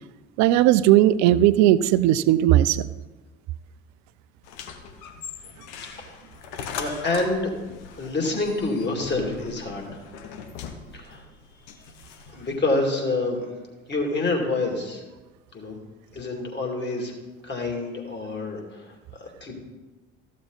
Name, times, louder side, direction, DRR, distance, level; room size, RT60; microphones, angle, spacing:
voice 1, 0.4-2.8, right 13 dB, 50° right, 16 dB, 0.5 m, -17 dB
sound 1, 4.4-12.6, left 6 dB, 60° left, 1.1 m, -40 dB
voice 2, 5.8-6.2 6.8-7.5 8.0-10.0 10.9-11.2 12.3-13.5 13.9-15.0 15.5-15.8 16.1-17.1 17.4-19.5, left 2 dB, 30° left, 2 dB, 2.6 m, -27 dB
14.0 x 7.2 x 4.0 m, 1.2 s
figure-of-eight pair, 60°, 38 cm